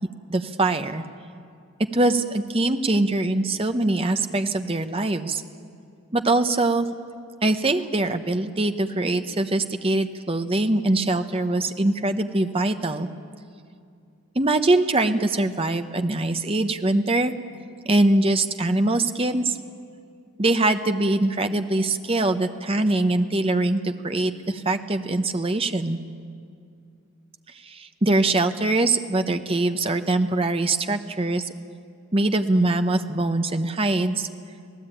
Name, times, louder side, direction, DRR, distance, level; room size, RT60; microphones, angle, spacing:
voice 1, 0.3-1.0 1.9-5.4 6.1-6.9 7.4-13.1 14.3-17.3 17.9-19.6 20.4-26.0 27.6-31.5 32.1-34.3, right 2 dB, 25° right, 8 dB, 0.9 m, -23 dB
26.5 x 17.5 x 9.0 m, 2.4 s
head